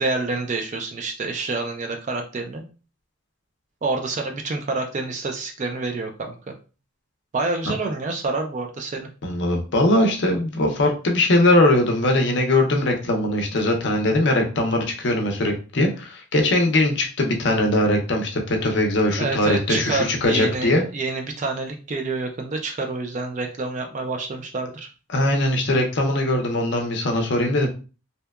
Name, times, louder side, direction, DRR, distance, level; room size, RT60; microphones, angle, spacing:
voice 1, 0.0-2.6 3.8-6.5 7.3-9.1 19.2-24.9, right 3 dB, 35° right, 4 dB, 0.3 m, -28 dB
voice 2, 9.2-20.8 25.1-27.7, left 1 dB, 55° left, 2 dB, 0.6 m, -21 dB
2.7 x 2.1 x 2.2 m, 0.34 s
head